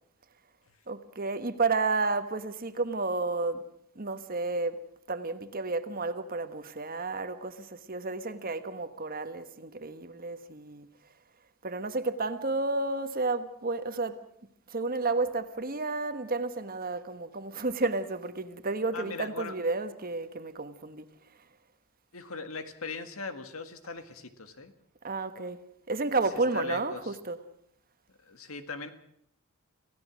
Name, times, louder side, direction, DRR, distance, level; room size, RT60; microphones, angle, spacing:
voice 1, 0.9-3.6 3.9-4.8 5.1-10.9 11.6-14.2 14.7-21.1 25.0-25.6 25.9-27.4, right 3 dB, 45° right, 1.3 m, -31 dB
voice 2, 18.9-19.5 22.1-24.7 26.5-27.1 28.2-28.9, left 4 dB, 80° left, 1.8 m, -39 dB
27.0 x 16.0 x 6.2 m
head